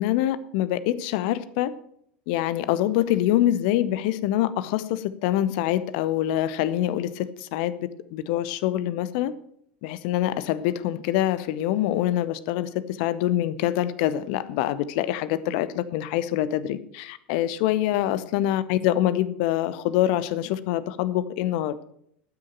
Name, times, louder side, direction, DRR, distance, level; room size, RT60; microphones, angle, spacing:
voice 1, 0.0-1.7 2.3-9.3 9.8-12.7 13.0-21.8, left 13 dB, 50° left, 15 dB, 0.8 m, -25 dB
12.5 x 6.4 x 7.4 m, 0.71 s
figure-of-eight pair, 80°, 6 cm